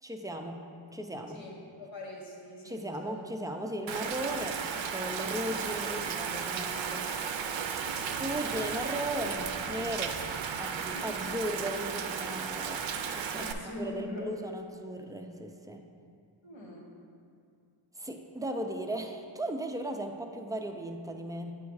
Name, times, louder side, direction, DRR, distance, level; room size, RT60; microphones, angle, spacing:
voice 1, 0.0-1.4 2.6-7.2 8.1-10.2 10.6-13.5 13.8-15.9 18.0-21.5, right 1 dB, 10° right, 4 dB, 0.4 m, -37 dB
voice 2, 1.8-3.3 7.8-8.2 10.9-11.3 13.3-14.3 16.4-16.9, left 2 dB, 65° left, -1 dB, 1.3 m, -43 dB
Rain, 3.9-13.5, right 6 dB, 65° right, 0.5 m, -34 dB
8.3 x 3.5 x 4.7 m, 2.3 s
wide cardioid pair, 85°, 50 cm